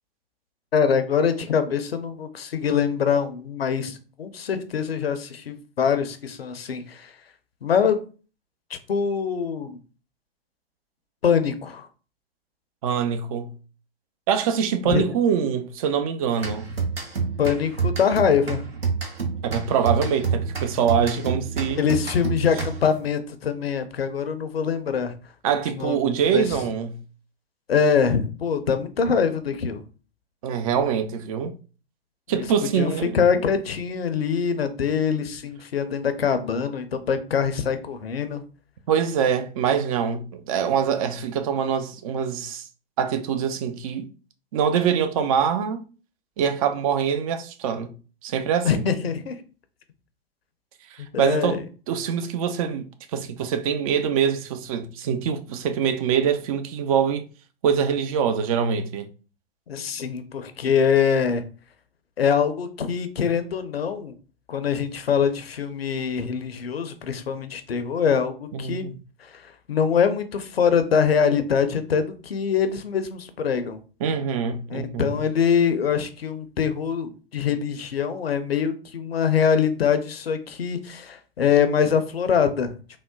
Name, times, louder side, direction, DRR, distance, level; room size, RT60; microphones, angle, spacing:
voice 1, 0.7-7.1 7.6-8.0 8.9-9.8 11.2-11.9 14.9-15.0 17.4-18.6 21.8-25.1 25.5-26.4 27.7-29.8 32.3-32.4 32.8-38.4 48.6-49.3 51.0-51.6 59.7-61.4 62.2-64.1 64.5-68.9 69.3-73.8 74.7-82.7, left 7 dB, 85° left, 0.5 m, -24 dB
voice 2, 12.8-13.5 14.3-16.7 19.4-21.8 25.4-27.0 30.4-31.5 32.3-33.1 38.9-42.7 43.0-44.1 44.5-45.8 46.4-47.9 48.2-48.7 50.9-51.6 51.9-57.2 57.6-59.1 68.5-68.9 74.0-75.2, right 7 dB, 40° right, 0.4 m, -24 dB
sound 1, 16.4-23.0, right 5 dB, 90° right, 0.7 m, -28 dB
3.6 x 2.0 x 2.2 m
figure-of-eight pair, 110°, 30 cm